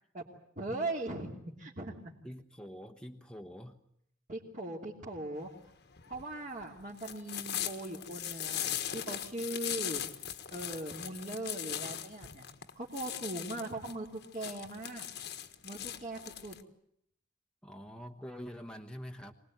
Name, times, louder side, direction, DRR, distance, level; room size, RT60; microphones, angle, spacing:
voice 1, 0.6-1.9 4.3-5.5 6.0-10.0 10.5-12.5 12.7-15.1 15.6-16.6, right 2 dB, 40° right, -5 dB, 2.9 m, -40 dB
voice 2, 2.2-3.8 17.6-19.3, equal, 5° left, 4 dB, 1.2 m, -46 dB
sound 1, 5.4-16.6, left 10 dB, 55° left, 1.4 m, -39 dB
25.0 x 20.0 x 9.4 m, 0.70 s
head